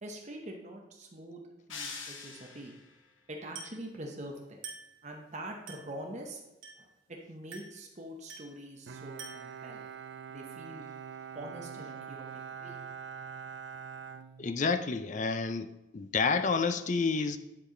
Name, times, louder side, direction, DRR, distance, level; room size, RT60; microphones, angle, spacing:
voice 1, 0.0-2.7 3.3-4.6 5.0-6.4 6.8-9.9 10.3-10.8 11.3-12.8, right 1 dB, 35° right, 2 dB, 0.8 m, -44 dB
sound 1, 1.7-3.0, left 5 dB, 70° left, 1.0 m, -43 dB
Glass, 3.5-3.9 4.6-5.0 5.7-6.0 6.6-7.0 7.5-7.9 8.3-8.6 9.2-9.6, right 4 dB, 90° right, 2.1 m, -46 dB
Bowed string instrument, 8.9-15.0, right 7 dB, 55° right, 0.4 m, -44 dB
voice 2, 14.4-17.4, left 4 dB, 35° left, 10 dB, 0.4 m, -29 dB
9.9 x 4.7 x 3.7 m, 1.0 s
head